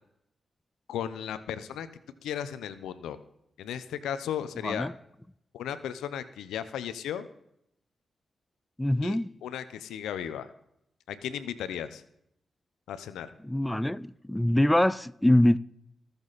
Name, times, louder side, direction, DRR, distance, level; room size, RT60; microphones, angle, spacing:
voice 1, 0.9-1.9 2.2-3.2 3.6-4.9 5.5-7.3 9.0-10.5 11.1-12.0 12.9-13.3, left 9 dB, 90° left, 0.7 m, -35 dB
voice 2, 8.8-9.3 13.4-15.6, left 1 dB, 10° left, 0.5 m, -24 dB
20.0 x 7.1 x 4.1 m
supercardioid pair, 45°, 0 cm